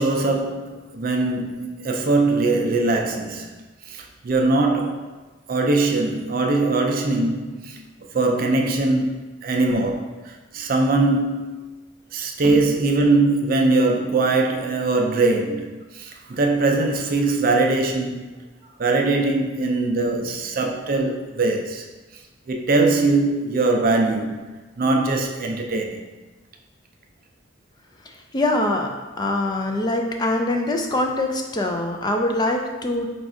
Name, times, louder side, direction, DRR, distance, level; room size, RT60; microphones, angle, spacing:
voice 1, 0.0-3.5 3.9-5.1 5.5-11.7 12.1-18.3 18.8-21.9 22.5-26.1, right 3 dB, 45° right, 0.4 m, -21 dB
voice 2, 28.3-33.1, left 1 dB, 20° left, 0.4 m, -23 dB
5.1 x 2.4 x 3.6 m
head